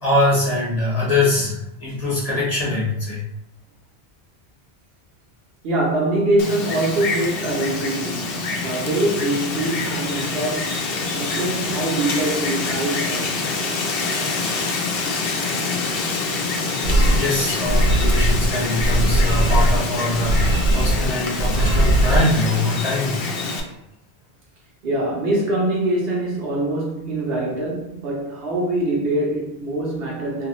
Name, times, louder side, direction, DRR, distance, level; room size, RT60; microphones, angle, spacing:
voice 1, 0.0-3.3 17.1-23.3 23.6-23.7, left 2 dB, 40° left, 0.9 m, -23 dB
voice 2, 5.6-13.4 24.8-30.5, right 1 dB, 65° right, 1.0 m, -24 dB
Wind, 6.4-23.6, left 3 dB, 65° left, 0.7 m, -26 dB
sound 1, 16.8-17.2 17.6-18.5 18.8-19.8 20.1-21.1 21.4-22.2, right 1 dB, 85° right, 0.9 m, -18 dB
2.9 x 2.6 x 3.0 m
omnidirectional pair, 1.1 m